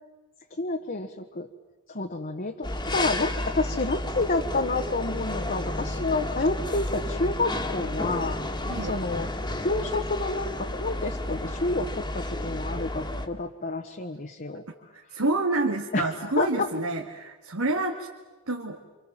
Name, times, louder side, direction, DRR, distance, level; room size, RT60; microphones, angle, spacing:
voice 1, 0.6-1.5 1.9-8.4 8.8-9.3 9.6-14.6 15.9-16.7, left 3 dB, 40° left, 2 dB, 1.5 m, -29 dB
sound 1, 2.6-13.3, left 1 dB, 20° left, 2.0 m, -32 dB
voice 2, 8.7-9.0 14.9-18.1 18.5-18.8, right 2 dB, 75° right, 1 dB, 2.2 m, -28 dB
29.5 x 26.5 x 7.5 m, 1.2 s
head